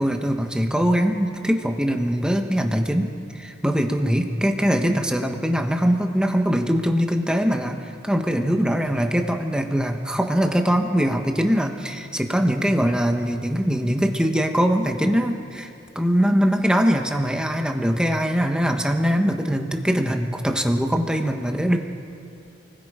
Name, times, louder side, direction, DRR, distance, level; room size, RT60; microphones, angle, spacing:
voice 1, 0.0-15.7 15.9-21.8, equal, 5° right, 4 dB, 1.2 m, -22 dB
30.0 x 20.5 x 5.0 m, 2.6 s
head